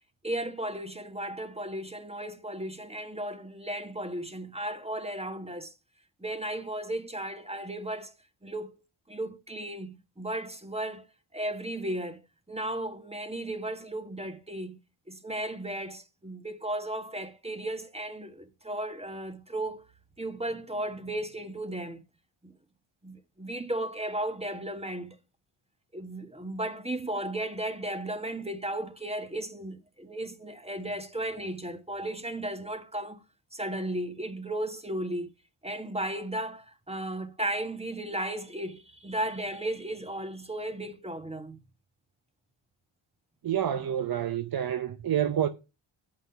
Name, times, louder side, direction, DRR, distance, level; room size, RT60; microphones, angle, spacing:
voice 1, 0.2-5.7 6.2-8.1 8.4-8.7 9.1-11.0 11.3-12.2 12.5-14.8 15.1-19.8 20.2-22.0 22.4-22.5 23.0-25.1 25.9-33.2 33.5-35.3 35.6-41.6, right 1 dB, 10° right, 1.5 m, -35 dB
voice 2, 43.4-45.5, right 10 dB, 45° right, 0.7 m, -28 dB
8.0 x 5.9 x 5.7 m
cardioid pair, 65°, 50 cm